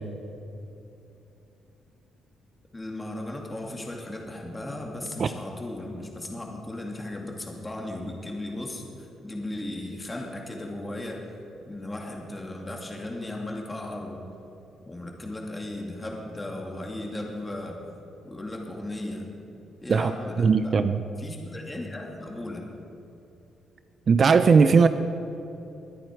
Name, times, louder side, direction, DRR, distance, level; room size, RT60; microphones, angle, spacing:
voice 1, 2.7-11.3 11.7-14.2 14.8-17.8 18.2-19.3 19.8-20.8 21.2-22.6, left 1 dB, 20° left, 0 dB, 2.4 m, -36 dB
voice 2, 20.4-21.0 24.1-24.9, right 5 dB, 45° right, 10 dB, 0.5 m, -18 dB
21.5 x 9.0 x 4.7 m, 2.8 s
cardioid pair, 90°, 0 cm